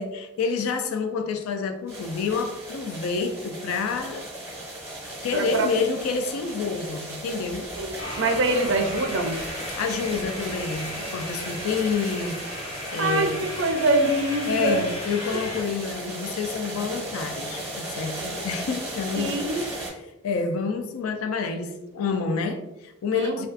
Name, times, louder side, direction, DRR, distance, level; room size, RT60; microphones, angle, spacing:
voice 1, 0.0-4.2 5.2-7.7 9.7-12.4 12.9-13.5 14.5-23.5, left 5 dB, 80° left, 0.3 m, -28 dB
sound 1, 1.9-19.9, right 1 dB, 10° right, 0.7 m, -36 dB
voice 2, 5.3-5.7 7.7-9.4 13.0-14.9 19.2-19.7 23.1-23.4, right 2 dB, 55° right, 0.4 m, -24 dB
sound 2, 8.0-15.6, left 1 dB, 30° left, 0.6 m, -36 dB
2.4 x 2.3 x 2.4 m
head